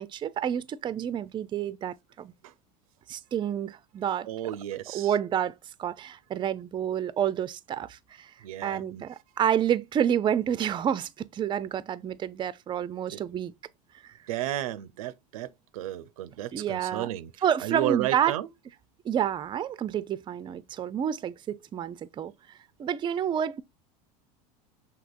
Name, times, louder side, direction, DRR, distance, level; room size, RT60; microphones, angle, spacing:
voice 1, 0.0-2.3 3.1-4.3 4.9-8.3 8.6-13.5 14.0-14.1 16.5-18.3 19.0-22.3 22.8-23.6, right 9 dB, 25° right, 0.4 m, -29 dB
voice 2, 4.3-5.1 8.4-9.0 13.1-13.2 14.3-17.3 17.6-18.5, right 13 dB, 85° right, 0.5 m, -33 dB
6.1 x 2.9 x 2.4 m
supercardioid pair, 110°, 18 cm